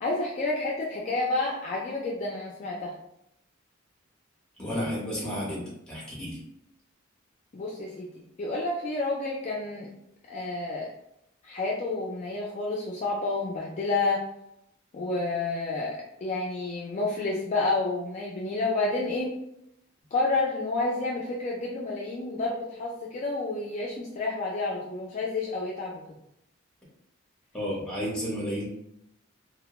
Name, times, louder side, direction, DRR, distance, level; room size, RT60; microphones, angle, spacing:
voice 1, 0.0-2.9 7.5-8.1 8.4-9.9 10.3-10.9 11.4-14.2 14.9-19.3 20.1-26.0, left 3 dB, 35° left, -4 dB, 0.3 m, -30 dB
voice 2, 4.6-6.4 27.5-28.7, equal, 5° left, -5 dB, 0.8 m, -32 dB
2.2 x 2.1 x 2.9 m, 0.79 s
head